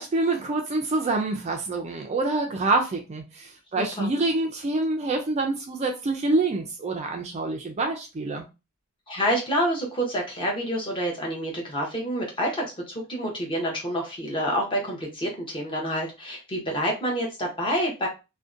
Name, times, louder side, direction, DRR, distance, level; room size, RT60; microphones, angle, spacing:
voice 1, 0.0-8.4, right 2 dB, 30° right, 0.3 m, -26 dB
voice 2, 3.8-4.1 9.1-18.1, equal, 25° left, 0.7 m, -28 dB
2.6 x 2.1 x 2.4 m
head